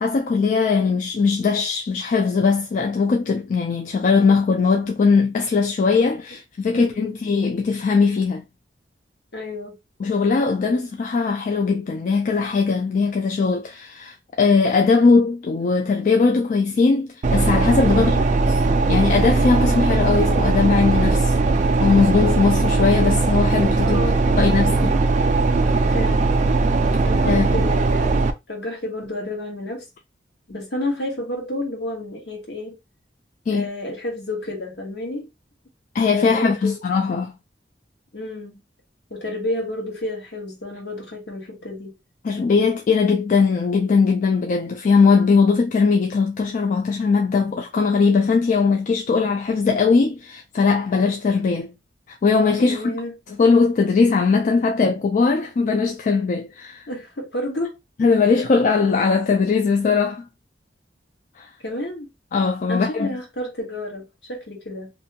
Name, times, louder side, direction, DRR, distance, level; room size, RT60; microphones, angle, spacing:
voice 1, 0.0-8.4 10.0-18.1 18.9-21.4 21.8-24.0 24.4-25.0 27.3-27.5 33.5-33.7 35.9-37.3 42.2-51.7 52.1-52.9 53.4-56.8 58.0-60.3 61.4-61.5 62.3-63.1, left 4 dB, 45° left, 0.3 m, -19 dB
voice 2, 6.7-7.2 9.3-9.8 17.9-18.3 23.8-24.4 25.9-26.4 27.0-28.2 28.5-29.9 30.5-32.8 33.5-35.3 36.2-36.8 38.1-38.6 39.1-41.9 52.7-53.1 56.9-57.7 61.6-62.1 62.7-64.9, left 1 dB, 65° left, 1.2 m, -30 dB
sound 1, 17.2-28.3, right 3 dB, 40° right, 0.3 m, -19 dB
2.6 x 2.2 x 2.7 m
head